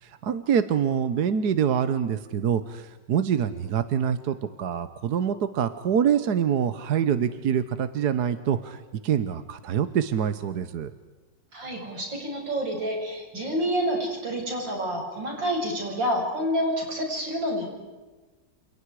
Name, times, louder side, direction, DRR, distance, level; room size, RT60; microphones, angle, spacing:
voice 1, 0.0-10.9, right 8 dB, 65° right, 11 dB, 1.5 m, -25 dB
voice 2, 11.5-17.7, equal, 90° right, 0 dB, 7.7 m, -28 dB
29.0 x 28.5 x 4.9 m, 1.3 s
omnidirectional pair, 2.0 m